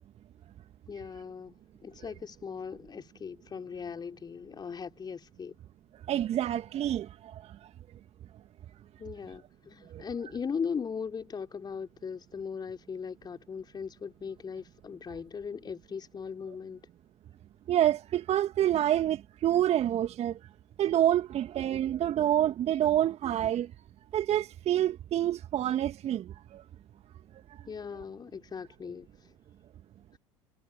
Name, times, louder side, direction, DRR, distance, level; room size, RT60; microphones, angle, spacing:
voice 1, 0.9-1.5 1.8-5.5 9.0-16.8 27.7-29.1 30.1-30.2, left 6 dB, 25° left, 3.9 m, -38 dB
voice 2, 6.1-7.4 9.9-10.0 17.7-20.4 20.8-23.7 24.1-26.6, right 12 dB, 40° right, 2.1 m, -27 dB
figure-of-eight pair, 70°, 16 cm